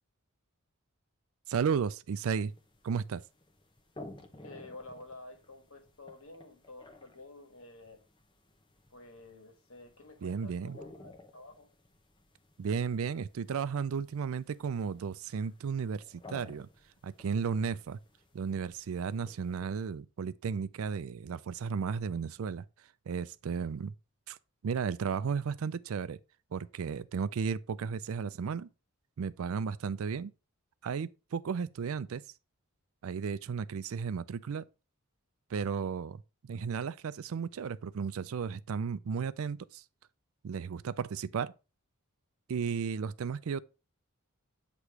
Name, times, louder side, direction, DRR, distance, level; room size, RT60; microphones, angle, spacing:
voice 1, 1.5-2.5 2.8-3.2 10.2-10.8 12.6-16.7 17.0-18.0 18.3-22.6 23.1-23.9 24.3-24.4 24.6-26.2 26.5-28.7 29.2-30.3 30.8-32.2 33.0-34.7 35.5-39.8 40.4-41.5 42.5-43.6, right 6 dB, 70° right, 0.4 m, -34 dB
sound 1, 2.2-19.9, left 1 dB, 20° left, 0.8 m, -55 dB
voice 2, 4.4-8.0 8.9-11.7, left 2 dB, 65° left, 1.6 m, -50 dB
8.2 x 3.0 x 4.7 m
head